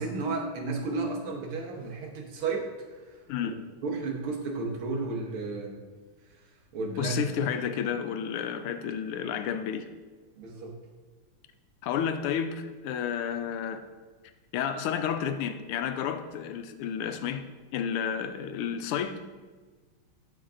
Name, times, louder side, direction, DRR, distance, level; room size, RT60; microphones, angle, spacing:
voice 1, 0.0-3.0 3.8-5.8 6.7-7.2 10.4-10.7, right 3 dB, 75° right, 0 dB, 1.9 m, -33 dB
voice 2, 7.0-9.8 11.8-13.8 14.5-17.4 17.7-19.2, left 8 dB, 85° left, 9 dB, 1.5 m, -31 dB
12.0 x 4.6 x 2.5 m, 1.4 s
omnidirectional pair, 2.4 m